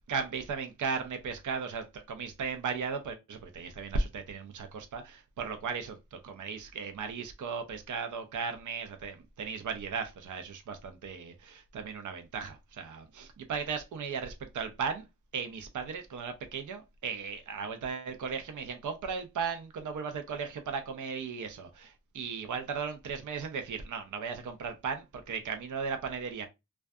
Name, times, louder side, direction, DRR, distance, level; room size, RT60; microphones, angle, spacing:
voice 1, 0.1-15.0 15.3-26.5, right 5 dB, 70° right, 0.5 m, -36 dB
2.5 x 2.2 x 2.2 m
wide cardioid pair, 70°, 32 cm